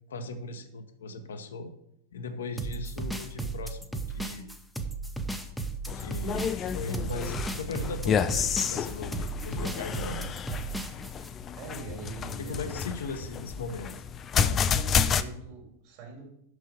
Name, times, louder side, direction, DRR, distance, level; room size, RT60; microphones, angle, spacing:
voice 1, 0.1-1.7 2.1-4.5 5.9-10.3 12.4-13.9 14.3-14.6, left 3 dB, 65° left, 7 dB, 0.9 m, -38 dB
sound 1, 2.6-11.3, right 3 dB, ahead, 0.8 m, -35 dB
sound 2, 5.9-15.2, left 7 dB, 25° left, 0.4 m, -30 dB
voice 2, 11.6-12.8 14.7-16.3, right 3 dB, 45° right, 0 dB, 3.5 m, -43 dB
6.4 x 6.2 x 7.1 m, 0.75 s
figure-of-eight pair, 90°, 0 cm